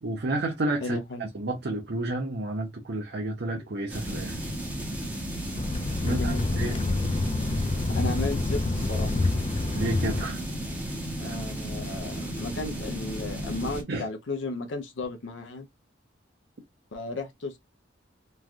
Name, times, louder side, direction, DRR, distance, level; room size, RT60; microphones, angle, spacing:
voice 1, 0.0-4.4 6.0-6.8 9.8-10.4 11.2-11.4 13.9-14.1, right 2 dB, 60° right, 0.6 m, -31 dB
voice 2, 0.8-1.3 6.1-6.5 7.9-9.3 11.2-15.7 16.9-17.6, left 2 dB, 85° left, 0.6 m, -34 dB
sound 1, 3.9-13.8, right 1 dB, 10° right, 0.9 m, -34 dB
sound 2, 5.5-10.2, left 2 dB, 30° left, 0.3 m, -27 dB
3.1 x 2.3 x 2.4 m
head